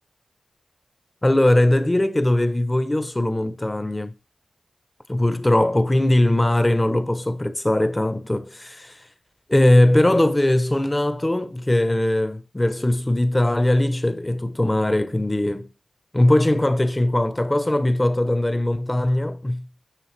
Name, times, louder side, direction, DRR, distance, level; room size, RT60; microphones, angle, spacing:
voice 1, 1.2-4.1 5.1-9.0 9.5-15.7 16.1-19.7, left 1 dB, 20° left, 0.7 m, -20 dB
9.1 x 3.5 x 3.2 m
wide cardioid pair, 70°, 0 cm